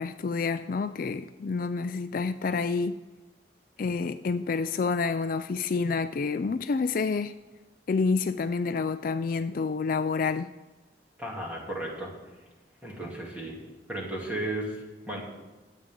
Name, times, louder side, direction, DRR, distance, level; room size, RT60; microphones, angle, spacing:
voice 1, 0.0-3.0 3.8-7.3 7.9-10.5, left 4 dB, 50° left, 11 dB, 0.3 m, -28 dB
voice 2, 11.2-12.1 12.8-13.6 13.9-15.2, right 1 dB, 10° right, -3 dB, 2.9 m, -34 dB
22.0 x 8.5 x 3.8 m, 1.2 s
head